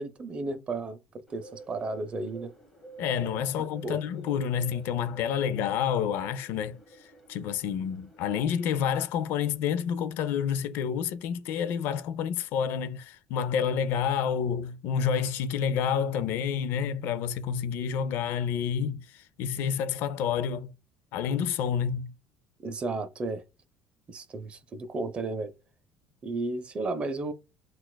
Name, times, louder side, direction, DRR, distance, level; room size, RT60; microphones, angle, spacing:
voice 1, 0.0-2.5 3.6-4.0 22.6-23.4 24.1-25.5 26.2-27.3, right 3 dB, 30° right, 0.5 m, -33 dB
Bird, 1.3-9.6, right 3 dB, 5° left, 1.3 m, -50 dB
voice 2, 3.0-6.8 7.3-20.7 21.1-22.1, left 8 dB, 65° left, 0.4 m, -29 dB
6.0 x 2.3 x 2.2 m
cardioid pair, 125°, 4 cm